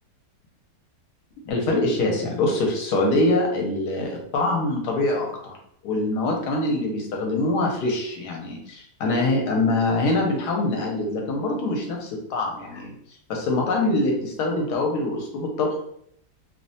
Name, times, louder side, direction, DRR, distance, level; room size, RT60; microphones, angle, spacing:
voice 1, 1.5-5.6 5.8-12.9 13.3-15.8, left 2 dB, 85° left, 1 dB, 1.2 m, -24 dB
2.9 x 2.1 x 2.7 m, 0.70 s
omnidirectional pair, 1.7 m